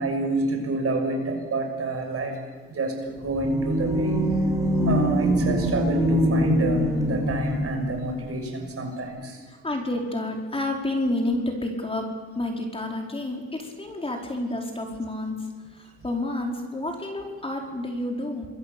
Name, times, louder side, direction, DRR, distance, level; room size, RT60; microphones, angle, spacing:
voice 1, 0.0-2.4 2.7-4.2 4.9-9.4, right 2 dB, 50° right, 4 dB, 6.2 m, -28 dB
sound 1, 3.2-8.0, equal, 10° right, 6.0 m, -24 dB
voice 2, 9.6-12.1 12.4-15.3 16.0-18.5, left 1 dB, 20° left, 1 dB, 4.6 m, -29 dB
27.0 x 22.0 x 7.0 m, 1.4 s
cardioid pair, 90°, 30 cm